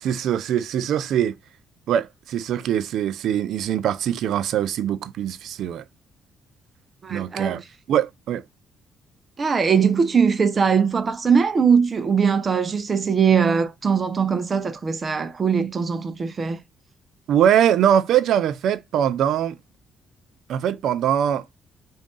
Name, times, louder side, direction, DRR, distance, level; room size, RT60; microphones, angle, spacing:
voice 1, 0.0-1.3 1.9-5.8 7.1-7.6 7.9-8.4 17.3-19.5 20.5-21.4, right 10 dB, 75° right, 0.4 m, -22 dB
voice 2, 7.0-7.6 9.4-16.6, right 6 dB, 35° right, 0.7 m, -21 dB
3.5 x 2.6 x 3.7 m
cardioid pair, 90°, 0 cm